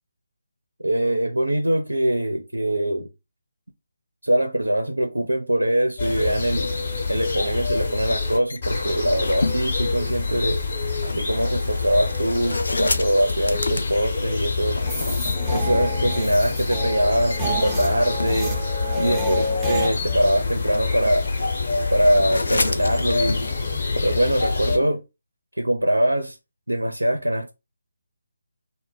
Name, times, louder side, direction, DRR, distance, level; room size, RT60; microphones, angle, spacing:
voice 1, 0.8-3.1 4.2-6.7 7.1-10.6 11.1-14.8 15.5-18.5 19.0-21.3 21.9-23.4 24.0-25.0 25.6-26.4 26.7-27.5, right 1 dB, 90° right, 0.5 m, -23 dB
sound 1, 6.0-24.8, left 4 dB, 50° left, 1.0 m, -26 dB
check-in, 6.6-24.9, left 2 dB, 70° left, 0.4 m, -34 dB
sound 2, 14.8-19.9, equal, ahead, 0.6 m, -28 dB
2.1 x 2.0 x 3.7 m
figure-of-eight pair, 150°, 0 cm